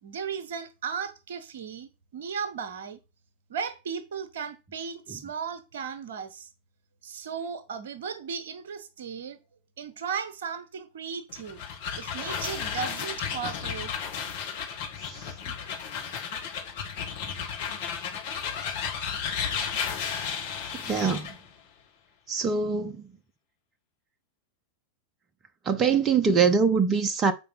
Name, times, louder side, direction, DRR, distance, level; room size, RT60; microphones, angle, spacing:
voice 1, 0.0-3.0 3.5-6.5 7.0-9.4 9.8-11.6 12.0-13.9, right 6 dB, 60° right, 1.0 m, -36 dB
sound 1, 11.3-21.4, left 7 dB, 50° left, 1.8 m, -33 dB
voice 2, 20.9-21.3 22.3-23.0 25.6-27.3, right 5 dB, 25° right, 0.8 m, -23 dB
7.8 x 5.2 x 4.3 m
figure-of-eight pair, 90°, 0 cm